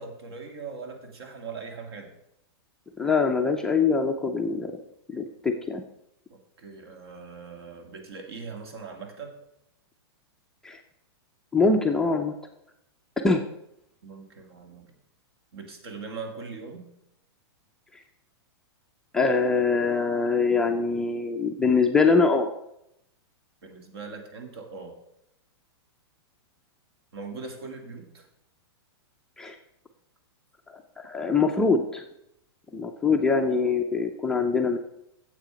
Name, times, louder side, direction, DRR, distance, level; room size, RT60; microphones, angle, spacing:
voice 1, 0.0-2.1 6.3-9.4 14.0-15.0 15.5-16.9 23.6-25.0 27.1-28.3, right 4 dB, 65° right, 5 dB, 2.1 m, -40 dB
voice 2, 3.0-4.8 5.1-5.8 10.6-10.8 11.5-12.3 13.2-13.4 19.1-22.5 29.4-29.6 31.0-32.0 32.7-34.8, left 4 dB, 5° left, 1 dB, 0.3 m, -23 dB
9.2 x 7.5 x 5.0 m, 0.81 s
supercardioid pair, 165°, 14 cm